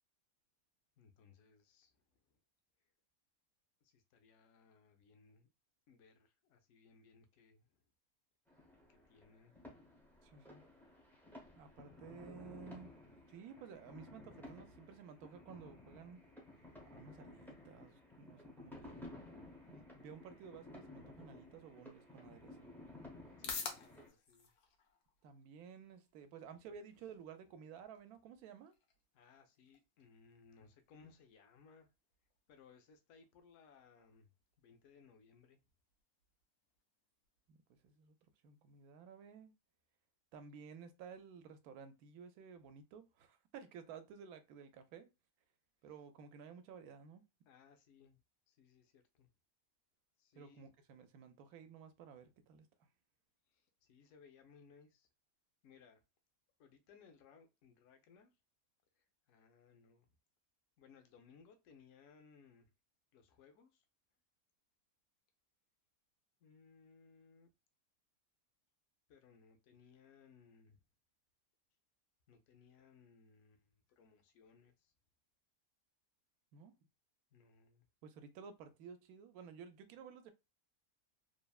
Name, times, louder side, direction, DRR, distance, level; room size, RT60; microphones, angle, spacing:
voice 1, 1.0-2.4 3.8-5.5 5.9-7.9 8.9-9.8 11.1-11.2 22.3-22.5 23.4-24.5 26.9-27.0 29.1-31.9 32.5-34.3 34.6-35.6 47.5-49.3 50.2-50.7 53.5-55.1 55.6-56.0 56.6-58.3 58.9-60.1 60.8-62.7 63.1-63.8 66.4-67.5 69.1-70.8 72.3-74.9 77.3-77.9, left 5 dB, 65° left, 0.8 m, -65 dB
sound 1, 8.5-24.1, left 2 dB, 5° left, 0.4 m, -56 dB
voice 2, 10.2-10.6 11.6-12.9 13.3-16.2 16.8-19.1 19.7-22.7 25.2-28.7 37.5-38.1 38.4-39.5 40.3-45.1 45.8-47.3 50.3-52.9 76.5-76.7 78.0-80.3, right 6 dB, 80° right, 1.0 m, -54 dB
sound 2, 22.9-38.9, left 6 dB, 90° left, 1.2 m, -55 dB
3.3 x 2.0 x 2.3 m
omnidirectional pair, 1.6 m